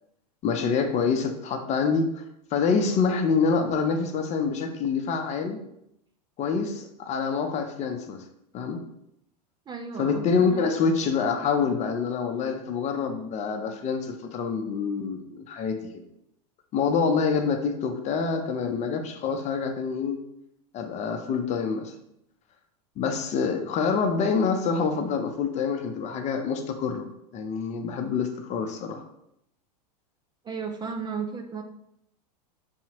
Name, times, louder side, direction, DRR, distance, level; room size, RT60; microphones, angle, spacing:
voice 1, 0.4-2.2 2.5-5.6 6.4-8.2 8.5-8.8 10.0-15.8 16.7-20.2 20.7-21.9 23.0-27.1 27.3-29.0, left 5 dB, 35° left, 6 dB, 0.6 m, -26 dB
voice 2, 9.7-10.7 30.4-31.6, right 5 dB, 20° right, 4 dB, 0.4 m, -34 dB
6.3 x 2.8 x 2.9 m, 0.78 s
hypercardioid pair, 100°, 21 cm